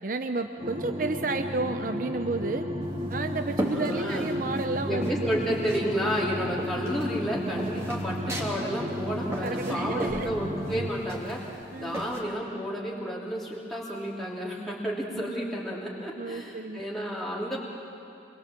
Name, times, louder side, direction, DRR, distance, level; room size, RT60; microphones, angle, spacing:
voice 1, 0.0-2.7 3.1-5.3 9.4-10.3 11.7-12.0 15.1-15.3 16.2-16.8, right 3 dB, 50° right, 7 dB, 0.7 m, -31 dB
sound 1, 0.6-10.9, equal, 35° right, 2.2 m, -33 dB
sound 2, 2.8-4.7 5.0-5.9 6.1-12.2, equal, 15° right, 2.8 m, -36 dB
voice 2, 3.7-4.3 4.8-17.6, equal, ahead, -6 dB, 3.0 m, -31 dB
27.5 x 22.0 x 7.5 m, 2.7 s
head